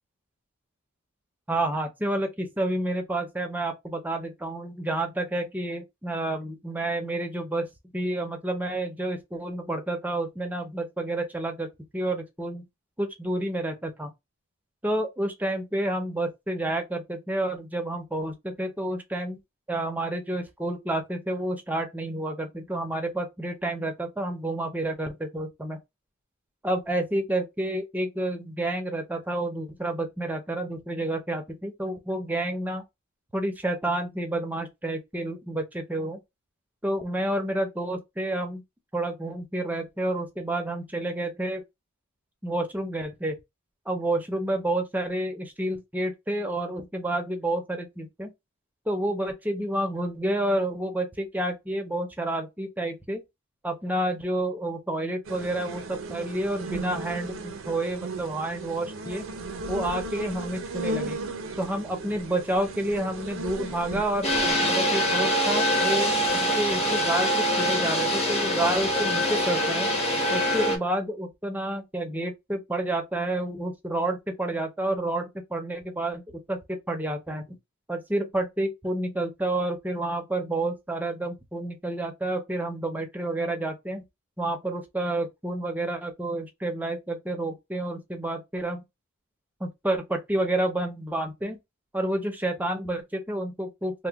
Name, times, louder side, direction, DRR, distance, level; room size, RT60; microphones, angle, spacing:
voice 1, 1.5-7.7 7.9-11.7 11.9-12.6 13.0-14.1 14.8-19.4 19.7-25.8 26.6-32.8 33.3-36.2 36.8-38.6 38.9-41.6 42.4-43.4 43.9-48.3 48.9-53.2 53.6-59.3 59.7-61.2 61.6-69.9 70.3-77.6 77.9-84.0 84.4-88.8 89.6-91.6 91.9-94.1, right 1 dB, 10° right, 0.6 m, -29 dB
sound 1, 55.3-64.5, right 2 dB, 65° right, 0.6 m, -36 dB
sound 2, 64.2-70.8, equal, 30° left, 1.0 m, -24 dB
2.9 x 2.1 x 3.4 m
head